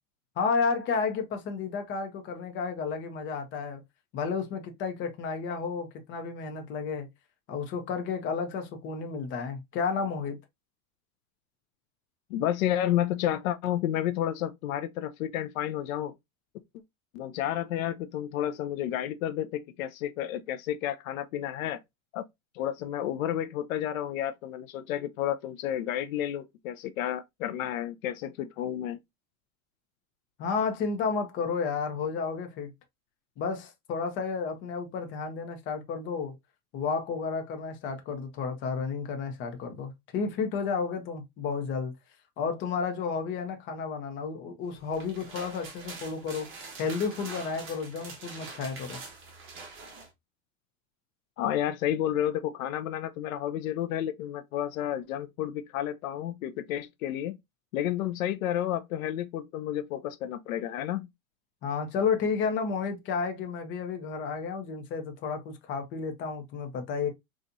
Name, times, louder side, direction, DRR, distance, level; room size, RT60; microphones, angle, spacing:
voice 1, 0.4-3.8 4.1-7.1 7.5-10.4 30.4-32.7 33.4-36.3 36.7-41.9 42.4-46.5 46.8-49.0 61.6-67.1, left 5 dB, 30° left, 0.8 m, -32 dB
voice 2, 12.3-16.1 17.1-21.8 22.1-22.2 22.5-29.0 51.4-57.4 57.7-61.1, left 11 dB, 70° left, 0.6 m, -31 dB
sound 1, 44.8-50.1, right 4 dB, 30° right, 1.2 m, -44 dB
4.1 x 2.4 x 2.6 m
supercardioid pair, 145°, 42 cm